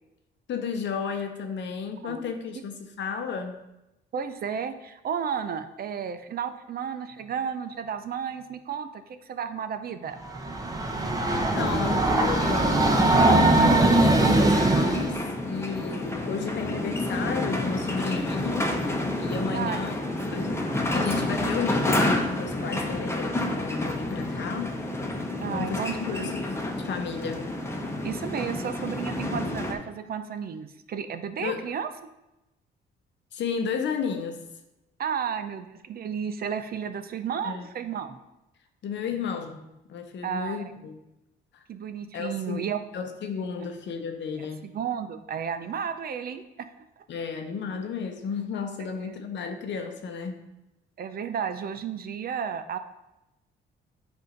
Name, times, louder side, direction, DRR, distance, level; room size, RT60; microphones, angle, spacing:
voice 1, 0.5-3.6 11.3-18.8 19.2-20.0 20.3-20.5 20.9-24.8 25.4-26.5 26.8-27.5 31.4-31.6 33.3-34.4 37.4-37.7 38.8-39.6 39.9-40.9 41.5-41.6 42.1-42.6 42.9-44.7 47.1-50.4, left 6 dB, 65° left, 6 dB, 0.8 m, -33 dB
voice 2, 2.0-2.3 4.1-10.2 19.5-19.8 25.4-26.2 28.0-31.9 35.0-38.2 40.2-40.6 41.7-42.8 44.4-46.9 49.0-49.1 51.0-52.8, right 7 dB, 50° right, 9 dB, 0.5 m, -33 dB
Train, 10.3-15.2, right 2 dB, 20° right, 0.8 m, -21 dB
sound 1, 11.6-29.7, left 1 dB, 15° left, 0.9 m, -30 dB
8.0 x 2.7 x 5.1 m, 0.95 s
cardioid pair, 90°, 20 cm